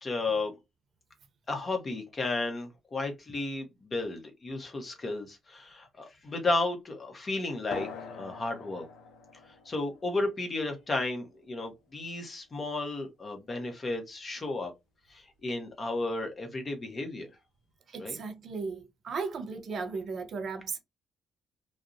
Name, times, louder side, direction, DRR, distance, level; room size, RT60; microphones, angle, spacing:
voice 1, 0.0-0.5 1.5-8.9 9.5-14.7 15.1-17.3 18.0-18.2, left 2 dB, 40° left, 0.8 m, -33 dB
sound 1, 7.7-12.7, left 5 dB, 75° left, 0.4 m, -46 dB
voice 2, 17.9-20.8, right 4 dB, 60° right, 0.5 m, -36 dB
2.5 x 2.0 x 2.4 m
supercardioid pair, 55°, 0 cm